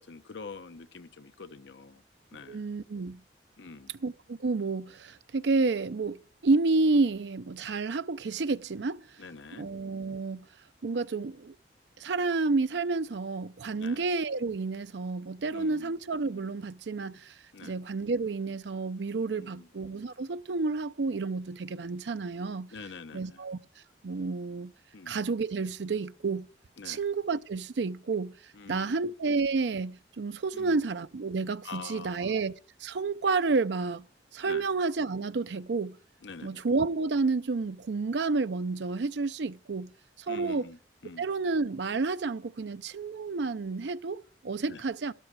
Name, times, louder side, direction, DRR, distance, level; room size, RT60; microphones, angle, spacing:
voice 1, 0.0-2.0 2.3-2.6 3.6-3.9 9.2-9.7 13.8-14.0 15.5-15.9 17.5-17.8 19.3-19.7 22.7-23.4 24.9-25.2 26.8-27.0 28.5-29.0 30.5-30.8 31.6-32.3 34.4-34.7 36.2-36.6 40.3-41.2 44.7-44.8, left 4 dB, 75° left, 0.8 m, -45 dB
voice 2, 2.5-3.2 4.0-9.0 9.6-10.5 10.8-11.5 12.0-17.3 17.6-22.7 23.1-23.6 24.0-24.7 25.1-26.5 26.8-28.4 28.7-32.5 32.8-34.0 34.3-36.0 36.4-39.9 40.3-40.7 41.2-45.1, right 3 dB, 70° right, 0.5 m, -30 dB
12.5 x 12.5 x 4.7 m
head